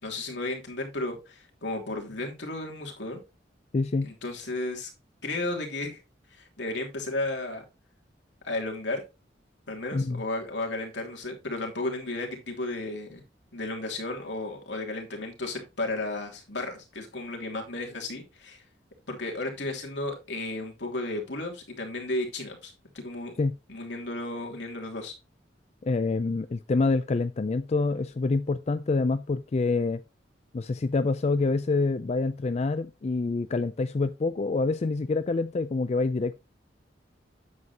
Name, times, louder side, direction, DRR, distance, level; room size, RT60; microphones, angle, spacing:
voice 1, 0.0-3.2 4.0-4.9 5.2-6.0 6.3-7.6 8.4-9.0 9.7-13.2 13.5-18.6 19.1-23.3 23.7-25.1, left 2 dB, 75° left, 2.9 m, -33 dB
voice 2, 3.7-4.1 9.9-10.2 23.4-23.5 25.8-30.0 30.5-36.4, left 3 dB, 40° left, 0.4 m, -26 dB
9.4 x 7.7 x 2.9 m
head